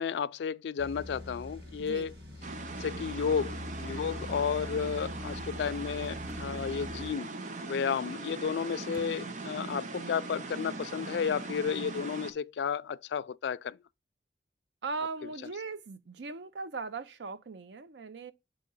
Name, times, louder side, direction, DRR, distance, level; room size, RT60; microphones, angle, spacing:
voice 1, 0.0-2.1 2.7-7.3 7.7-13.8, left 6 dB, 85° left, 0.3 m, -32 dB
sound 1, 0.8-7.1, left 2 dB, 70° right, 1.6 m, -43 dB
sound 2, 2.4-12.3, right 3 dB, 45° right, 0.6 m, -40 dB
sound 3, 3.9-9.1, right 1 dB, 10° right, 0.7 m, -61 dB
voice 2, 14.8-18.3, right 4 dB, 90° right, 0.6 m, -39 dB
7.7 x 2.8 x 5.3 m
head